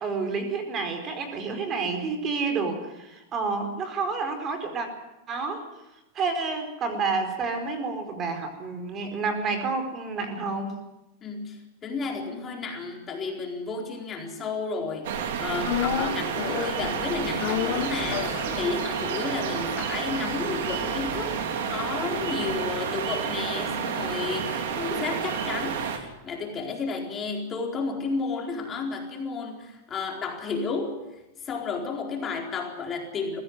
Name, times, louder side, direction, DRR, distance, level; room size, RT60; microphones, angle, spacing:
voice 1, 0.0-4.9 5.3-5.6 6.1-10.8, right 4 dB, 30° right, 6 dB, 4.5 m, -29 dB
voice 2, 11.2-21.4 21.7-33.4, left 4 dB, 25° left, 1 dB, 4.3 m, -32 dB
sound 1, 15.0-26.0, right 7 dB, 70° right, 3.5 m, -30 dB
sound 2, 15.6-23.9 24.2-24.3, left 12 dB, 50° left, 1.3 m, -35 dB
21.5 x 16.0 x 9.6 m, 0.97 s
supercardioid pair, 130°, 0 cm